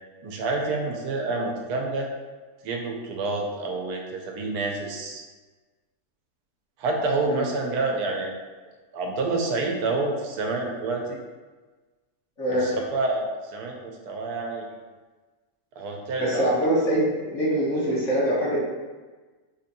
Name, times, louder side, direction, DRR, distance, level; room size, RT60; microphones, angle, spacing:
voice 1, 0.2-2.1 2.6-5.2 6.8-8.3 8.9-11.2 12.5-14.7 15.8-16.5, right 3 dB, 90° right, 1 dB, 1.1 m, -28 dB
voice 2, 12.4-12.7 16.2-18.6, right 1 dB, 55° left, -8 dB, 1.5 m, -24 dB
4.4 x 2.6 x 2.6 m, 1.3 s
omnidirectional pair, 1.6 m